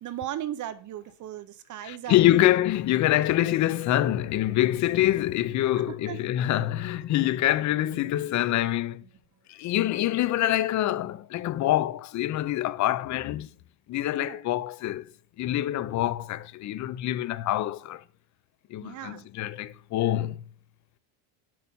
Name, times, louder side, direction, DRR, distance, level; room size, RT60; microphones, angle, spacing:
voice 1, 0.0-2.5 5.7-6.2 14.2-14.4 18.8-19.3, right 12 dB, 40° right, 0.6 m, -37 dB
voice 2, 1.8-9.0 9.5-13.5 13.9-15.1 15.4-18.0 18.7-20.4, left 14 dB, 40° left, 0.5 m, -25 dB
sound 1, 3.2-5.8 7.2-9.7, right 7 dB, 25° right, 3.8 m, -56 dB
7.7 x 5.5 x 5.5 m
cardioid pair, 145°, 44 cm